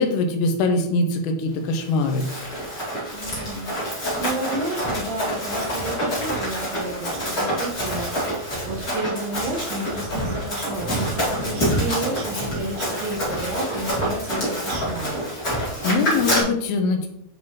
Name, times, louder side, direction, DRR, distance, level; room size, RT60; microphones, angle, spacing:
voice 1, 0.0-2.3 15.5-17.1, left 3 dB, 90° left, 5 dB, 3.5 m, -23 dB
Run, 1.8-16.4, equal, 40° left, 1.2 m, -27 dB
voice 2, 3.1-15.2, right 2 dB, 75° right, -1 dB, 3.1 m, -31 dB
9.7 x 3.7 x 3.1 m, 0.76 s
omnidirectional pair, 5.7 m